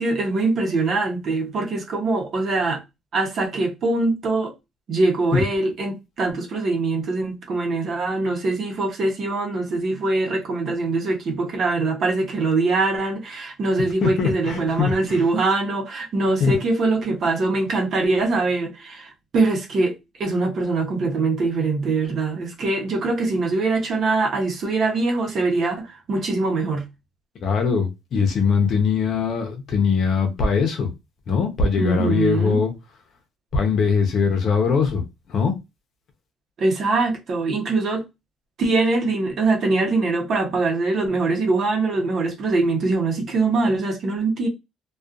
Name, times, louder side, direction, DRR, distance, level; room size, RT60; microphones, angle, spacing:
voice 1, 0.0-2.8 3.1-4.5 4.9-19.9 20.2-26.8 31.8-32.6 36.6-38.0 38.6-44.5, right 3 dB, 55° right, 0.9 m, -23 dB
voice 2, 14.0-15.2 16.4-16.5 27.4-30.9 31.3-32.7 33.5-35.0 35.3-35.5, left 5 dB, 60° left, 0.7 m, -21 dB
2.5 x 2.3 x 2.4 m
cardioid pair, 105°, 0 cm